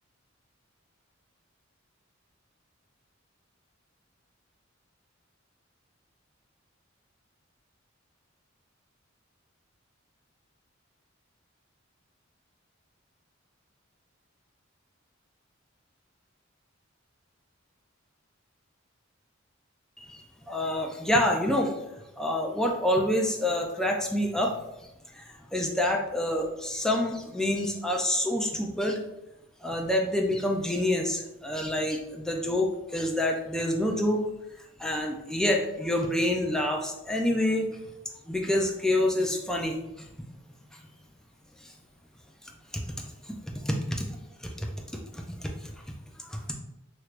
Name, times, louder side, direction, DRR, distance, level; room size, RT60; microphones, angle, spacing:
voice 1, 20.5-21.7 22.2-24.5 25.1-29.0 29.6-34.2 34.8-37.7 38.3-40.0 42.7-43.1 43.5-44.0 44.6-44.7 45.1-45.7 46.2-46.4, left 1 dB, 5° left, 0 dB, 0.4 m, -27 dB
3.1 x 3.0 x 2.4 m, 0.91 s
head